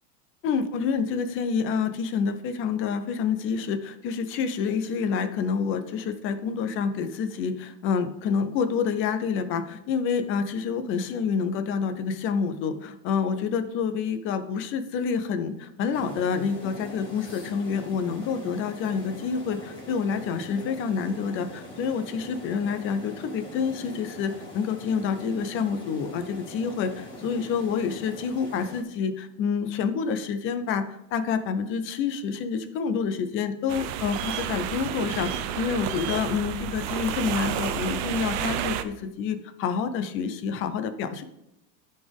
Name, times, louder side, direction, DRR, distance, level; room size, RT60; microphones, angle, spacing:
voice 1, 0.4-41.2, left 6 dB, 25° left, 9 dB, 0.5 m, -28 dB
sound 1, 15.9-28.8, equal, 10° left, 1.7 m, -42 dB
sound 2, 33.7-38.8, right 10 dB, 50° right, 0.7 m, -30 dB
13.0 x 4.3 x 3.4 m, 0.86 s
supercardioid pair, 150°, 48 cm